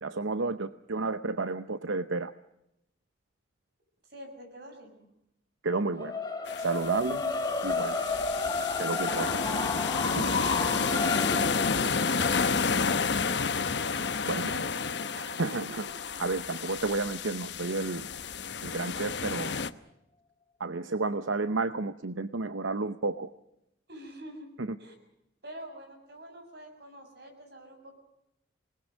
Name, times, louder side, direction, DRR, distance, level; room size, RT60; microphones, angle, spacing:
voice 1, 0.0-2.3 5.6-6.2 6.6-7.2 7.6-8.1 8.8-9.3 10.1-10.3 14.3-14.5 15.2-15.8 16.2-18.1 18.6-19.6 20.6-23.3, right 3 dB, 85° right, 12 dB, 0.8 m, -31 dB
voice 2, 4.1-5.1 7.0-7.3 9.3-9.6 11.0-13.4 14.3-15.7 23.9-24.5 24.8-25.0 25.4-28.0, right 1 dB, 55° right, 5 dB, 7.1 m, -46 dB
sound 1, 6.0-16.2, left 4 dB, 20° left, 1.8 m, -33 dB
sound 2, 6.5-19.7, left 5 dB, 65° left, 1.0 m, -31 dB
26.5 x 20.5 x 6.5 m, 0.83 s
head